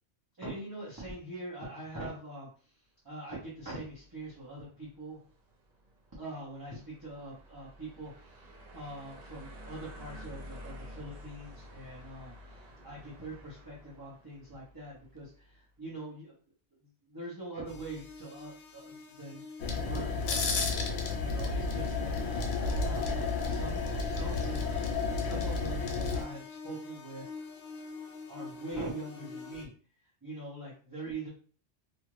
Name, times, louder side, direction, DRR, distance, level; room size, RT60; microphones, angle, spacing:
voice 1, 0.4-2.5 3.0-5.2 6.2-8.4 8.7-12.3 12.8-16.3 17.1-19.4 19.7-20.8 21.2-22.2 22.8-24.6 25.0-27.2 28.3-29.7 30.2-31.3, right 2 dB, 20° right, -6 dB, 0.7 m, -43 dB
sound 1, 3.4-15.6, equal, 60° right, 0.4 m, -51 dB
sound 2, 17.7-29.7, left 3 dB, 60° left, 0.7 m, -46 dB
sound 3, 19.6-26.2, left 4 dB, 80° left, 1.0 m, -31 dB
2.6 x 2.4 x 3.1 m, 0.40 s
omnidirectional pair, 1.2 m